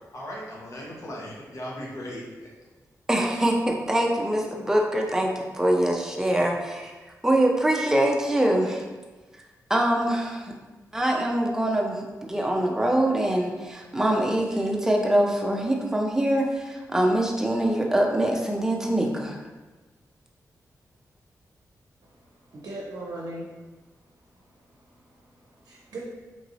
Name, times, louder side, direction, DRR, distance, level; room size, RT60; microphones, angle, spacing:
voice 1, 0.1-2.5, equal, 55° left, -4 dB, 0.8 m, -37 dB
voice 2, 3.1-6.9 7.2-8.9 9.3-9.4 9.7-10.5 10.9-19.5, right 1 dB, 10° right, 0 dB, 0.5 m, -24 dB
voice 3, 22.0-23.5 24.1-26.0, right 2 dB, 65° right, -3 dB, 0.6 m, -41 dB
3.0 x 2.7 x 2.6 m, 1.2 s
cardioid pair, 85°, 6 cm